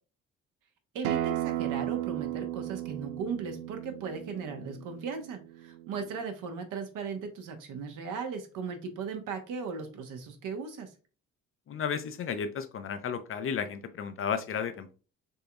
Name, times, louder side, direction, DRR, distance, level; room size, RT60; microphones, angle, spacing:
voice 1, 0.9-10.9, right 5 dB, 50° right, 5 dB, 1.1 m, -37 dB
Acoustic guitar, 1.0-6.2, right 14 dB, 70° right, 0.5 m, -35 dB
voice 2, 11.7-14.9, left 7 dB, 35° left, 9 dB, 0.6 m, -33 dB
5.3 x 3.8 x 2.3 m, 0.35 s
figure-of-eight pair, 45°, 39 cm